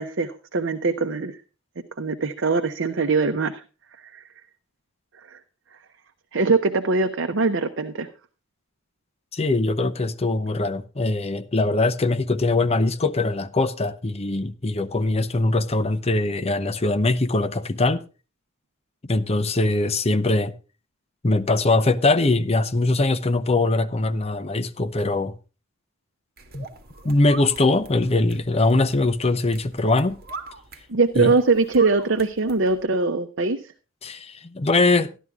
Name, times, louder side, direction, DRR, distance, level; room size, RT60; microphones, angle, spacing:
voice 1, 0.0-1.4 2.0-3.6 4.0-4.2 5.2-5.4 6.3-8.1 30.9-33.7, right 3 dB, 65° right, 0.8 m, -22 dB
voice 2, 9.3-18.0 19.1-20.5 21.2-25.3 26.5-26.7 27.0-30.2 31.2-31.3 34.0-35.1, left 2 dB, 30° left, 0.7 m, -22 dB
sound 1, 26.4-32.8, right 3 dB, 50° right, 1.7 m, -42 dB
13.5 x 11.0 x 3.6 m
head